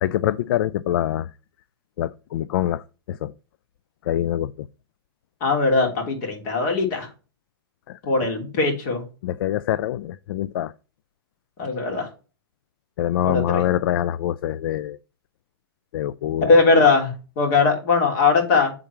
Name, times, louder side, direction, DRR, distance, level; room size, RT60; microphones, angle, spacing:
voice 1, 0.0-1.3 2.0-3.3 4.0-4.7 7.9-8.0 9.2-10.7 13.0-15.0 15.9-16.5, left 12 dB, 65° left, 0.4 m, -25 dB
voice 2, 5.4-7.1 8.0-9.0 11.6-12.1 13.2-13.6 16.4-18.7, left 4 dB, 45° left, 2.9 m, -20 dB
8.2 x 3.8 x 4.4 m
hypercardioid pair, 140°, 13 cm